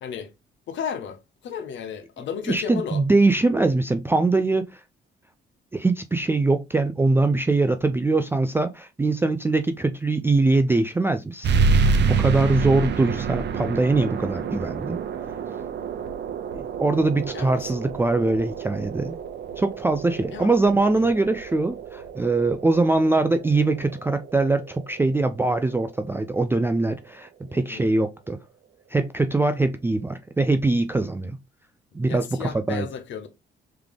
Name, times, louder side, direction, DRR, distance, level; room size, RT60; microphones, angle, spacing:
voice 1, 0.7-3.0 17.3-17.8 20.3-20.6 20.9-21.1 27.4-27.8 32.1-33.3, left 7 dB, 70° left, 0.9 m, -34 dB
voice 2, 2.5-4.8 5.7-11.5 12.0-15.0 16.5-19.2 19.6-28.4 28.9-31.4 31.9-32.9, right 2 dB, 10° right, 0.3 m, -22 dB
sound 1, 11.4-26.5, right 5 dB, 60° right, 0.7 m, -28 dB
3.6 x 3.3 x 3.4 m
cardioid pair, 90°, 20 cm